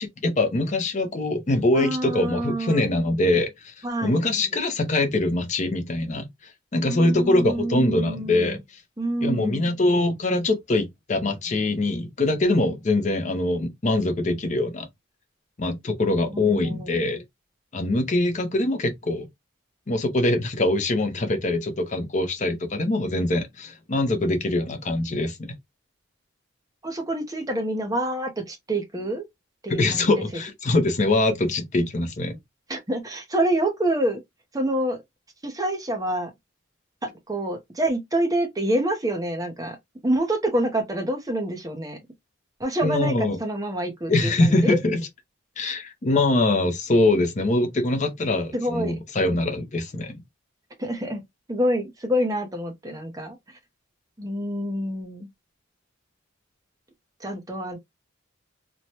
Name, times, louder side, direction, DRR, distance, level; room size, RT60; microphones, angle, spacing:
voice 1, 0.0-3.7 4.0-6.3 6.7-8.6 9.2-14.9 15.6-17.2 17.7-19.3 19.9-25.5 29.7-32.4 42.8-43.4 44.1-45.0 45.6-50.2, left 2 dB, 35° left, 0.5 m, -23 dB
voice 2, 1.7-2.9 3.8-4.3 6.8-8.6 9.0-9.7 16.3-17.1 26.8-29.3 29.6-30.2 32.7-34.2 34.5-35.0 35.4-36.3 37.0-39.8 40.0-42.0 42.6-44.8 48.5-49.0 50.8-51.2 51.5-53.6 54.2-55.3 57.2-57.8, right 1 dB, 15° right, 0.6 m, -27 dB
3.1 x 2.1 x 2.7 m
head